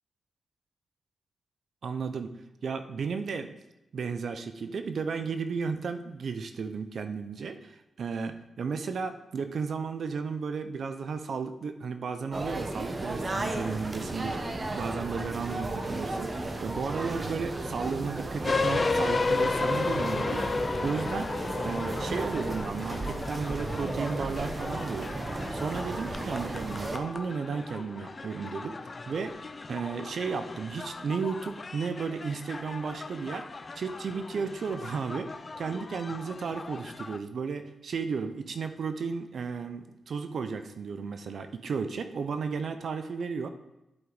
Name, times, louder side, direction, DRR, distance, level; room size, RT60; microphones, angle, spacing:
voice 1, 1.8-2.3 2.6-3.5 3.9-16.3 16.6-20.5 20.8-21.3 21.6-25.2 25.5-28.8 29.1-29.4 29.7-33.5 33.7-35.3 35.6-43.5, right 5 dB, 65° right, 9 dB, 0.6 m, -34 dB
sound 1, 12.3-27.0, right 2 dB, 35° right, 0.9 m, -34 dB
sound 2, 18.4-37.2, left 3 dB, 35° left, 0.4 m, -34 dB
11.0 x 4.6 x 4.0 m, 0.93 s
cardioid pair, 75°, 0 cm